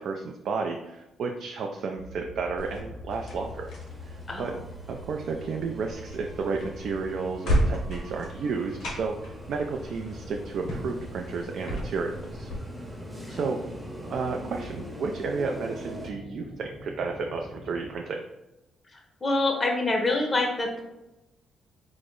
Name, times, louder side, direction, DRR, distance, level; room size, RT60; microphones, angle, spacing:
voice 1, 0.0-3.7 4.0-4.5 4.9-12.5 13.3-13.6 14.1-18.2, right 4 dB, 65° right, 2 dB, 0.3 m, -32 dB
sound 1, 2.0-18.0, left 1 dB, 80° right, 0.8 m, -45 dB
sound 2, 2.6-12.6, equal, 85° left, 0.9 m, -34 dB
sound 3, 3.1-16.1, equal, 10° right, 0.7 m, -43 dB
voice 2, 4.3-4.6 13.1-13.4 18.9-20.8, left 2 dB, 30° left, 2 dB, 0.6 m, -27 dB
3.9 x 2.0 x 3.6 m, 0.96 s
cardioid pair, 90°, 0 cm